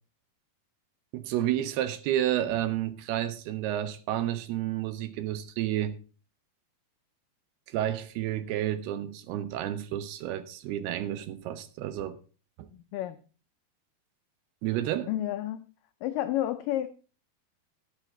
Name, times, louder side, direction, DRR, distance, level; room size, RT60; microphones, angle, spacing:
voice 1, 1.1-6.0 7.7-12.2 12.6-12.7 14.6-15.1, right 12 dB, 80° right, 2.9 m, -30 dB
voice 2, 12.7-13.2 15.1-15.7 16.0-16.9, left 13 dB, 85° left, 1.9 m, -30 dB
11.5 x 11.5 x 3.7 m
omnidirectional pair, 4.6 m